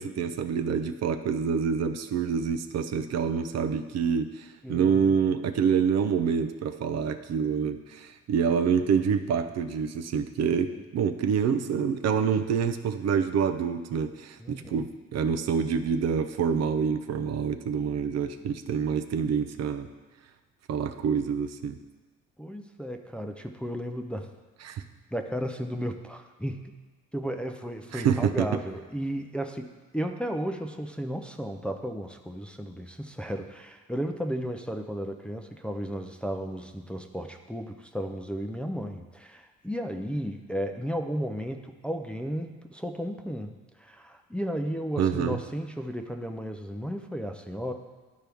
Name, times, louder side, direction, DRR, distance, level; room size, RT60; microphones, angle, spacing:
voice 1, 0.0-19.9 20.7-21.8 24.6-24.8 27.9-28.5 45.0-45.4, right 6 dB, 60° right, 9 dB, 0.5 m, -27 dB
voice 2, 4.6-5.1 10.7-10.8 14.4-14.8 22.4-24.3 25.1-26.8 27.1-47.7, equal, 5° left, 4 dB, 0.5 m, -34 dB
11.5 x 4.5 x 3.5 m, 1.3 s
cardioid pair, 90°, 30 cm